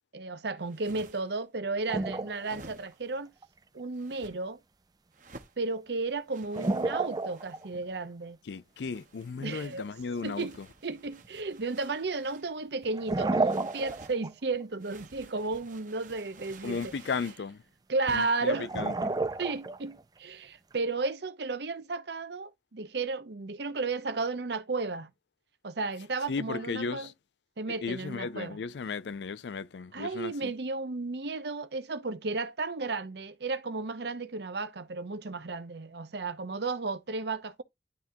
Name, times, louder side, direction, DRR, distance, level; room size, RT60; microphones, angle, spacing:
voice 1, 0.1-3.3 3.7-4.6 5.6-8.4 9.4-9.9 10.2-10.6 10.8-16.9 17.9-18.7 19.4-25.1 25.6-27.1 27.6-28.6 29.9-37.6, right 3 dB, 70° right, 0.8 m, -33 dB
sound 1, 0.6-1.4 2.3-3.2 3.9-4.3 5.1-5.6 6.3-7.7 8.7-12.5 13.4-14.2 14.8-17.5 18.1-18.5, right 3 dB, 45° right, 0.9 m, -52 dB
sound 2, 1.9-2.6 2.9-3.0 3.4-3.5 6.4-7.8 11.2-11.3 12.8-14.3 14.6-14.7 18.6-20.0, right 2 dB, 20° right, 0.4 m, -31 dB
voice 2, 8.5-10.7 16.6-17.6 18.1-19.1 26.3-27.1 27.7-30.5, left 5 dB, 80° left, 0.4 m, -35 dB
11.0 x 3.6 x 2.7 m
head